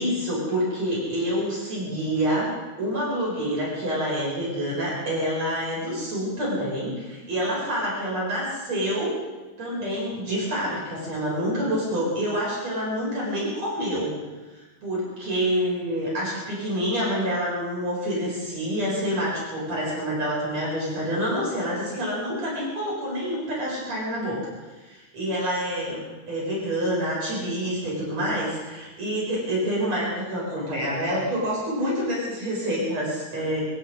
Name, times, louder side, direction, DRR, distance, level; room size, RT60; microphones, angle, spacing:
voice 1, 0.0-2.5 2.8-9.1 9.6-14.1 14.5-24.4 24.8-26.0 26.3-33.7, equal, 60° right, -5 dB, 9.4 m, -27 dB
26.5 x 24.5 x 4.2 m, 1.2 s
omnidirectional pair, 3.4 m